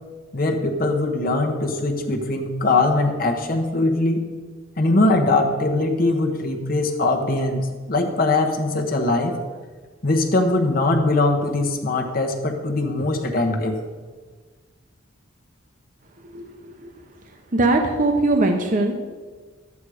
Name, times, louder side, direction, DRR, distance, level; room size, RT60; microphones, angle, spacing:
voice 1, 0.3-4.2 4.8-9.3 10.0-13.8, left 2 dB, 45° left, 3 dB, 1.1 m, -21 dB
voice 2, 16.2-16.9 17.5-18.9, right 2 dB, 40° right, 4 dB, 0.8 m, -21 dB
12.0 x 8.3 x 4.9 m, 1.5 s
head